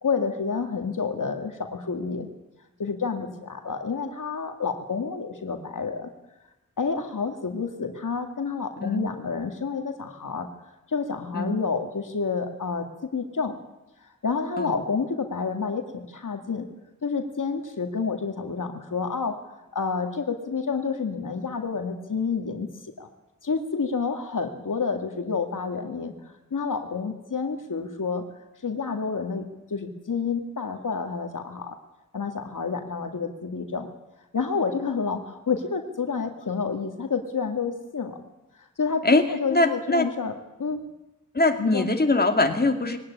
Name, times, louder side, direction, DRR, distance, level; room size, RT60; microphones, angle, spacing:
voice 1, 0.0-2.3 2.8-6.1 6.8-10.5 10.9-12.9 13.1-13.5 14.2-16.7 17.0-19.4 19.7-22.7 23.0-23.1 23.4-26.1 26.5-28.2 28.6-29.5 29.7-31.8 32.1-33.9 34.3-38.2 38.8-40.3 40.6-40.8 41.6-41.9, left 5 dB, 80° left, 5 dB, 2.1 m, -29 dB
voice 2, 39.5-40.0 41.3-43.0, left 2 dB, 30° left, 5 dB, 2.5 m, -22 dB
21.0 x 17.5 x 9.9 m, 1.0 s
wide cardioid pair, 70°, 31 cm